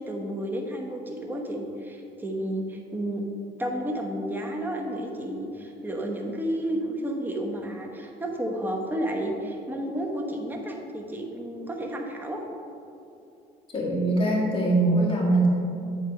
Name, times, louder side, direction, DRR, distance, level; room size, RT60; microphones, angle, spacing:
voice 1, 0.0-3.3 3.6-12.4, right 1 dB, 10° right, 0 dB, 1.0 m, -31 dB
voice 2, 13.7-15.5, right 2 dB, 30° left, -3 dB, 1.8 m, -22 dB
8.3 x 4.5 x 5.8 m, 2.6 s
cardioid pair, 110°, 17 cm